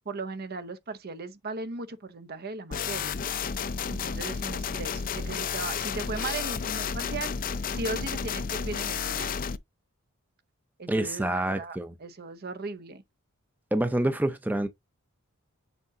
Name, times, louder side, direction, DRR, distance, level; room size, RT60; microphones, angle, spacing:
voice 1, 0.0-3.2 3.9-9.3 10.8-13.0, right 3 dB, 45° right, 0.8 m, -37 dB
sound 1, 2.7-9.6, left 6 dB, 40° left, 0.5 m, -32 dB
voice 2, 10.9-11.9 13.7-14.7, right 1 dB, 10° right, 0.6 m, -27 dB
8.1 x 4.9 x 2.8 m
head